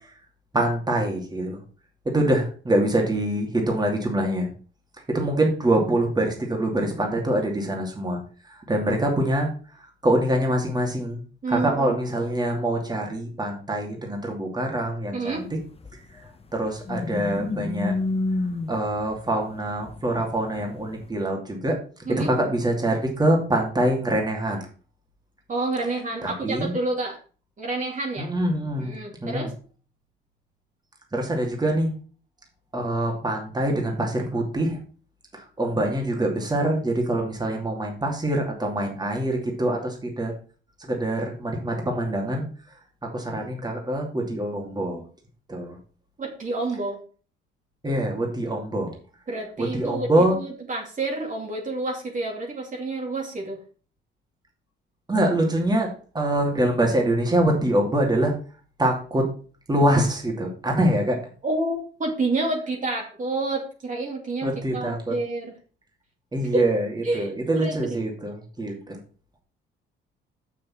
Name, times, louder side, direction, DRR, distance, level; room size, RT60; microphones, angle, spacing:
voice 1, 0.5-1.6 2.0-4.5 5.1-8.2 8.5-9.5 10.0-15.6 16.5-17.9 18.7-21.8 22.1-24.7 26.2-26.7 28.2-29.0 29.2-29.5 31.1-31.9 32.7-34.8 35.3-40.3 40.8-42.5 43.0-45.0 45.5-45.8 47.8-48.9 49.6-50.4 55.1-58.3 58.8-59.2 59.7-61.2 64.4-65.1 66.3-69.0, right 1 dB, 20° right, 1 dB, 2.7 m, -24 dB
voice 2, 11.4-12.0 15.1-15.5 22.1-22.3 25.5-27.2 27.6-28.3 28.8-29.5 46.2-47.0 49.3-50.1 50.3-53.6 61.4-65.5 66.5-66.6 67.0-68.0, right 2 dB, 40° right, 0 dB, 2.5 m, -29 dB
sound 1, 15.5-21.1, left 2 dB, 30° left, 1.1 m, -30 dB
6.5 x 6.4 x 5.8 m, 0.39 s
cardioid pair, 90°, 20 cm